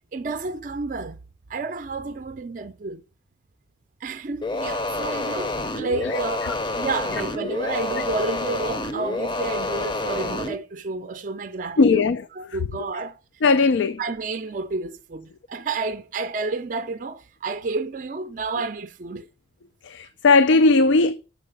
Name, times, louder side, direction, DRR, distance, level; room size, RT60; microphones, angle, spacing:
voice 1, 0.1-1.2 1.5-3.0 4.0-6.4 6.7-12.0 12.3-13.2 14.0-19.3, right 3 dB, 45° right, 0.4 m, -30 dB
sound 1, 4.4-10.6, left 2 dB, 25° left, 0.7 m, -28 dB
voice 2, 6.0-6.5 11.8-12.3 13.4-14.0 19.8-21.1, left 3 dB, 75° left, 0.4 m, -18 dB
6.5 x 4.7 x 6.6 m
head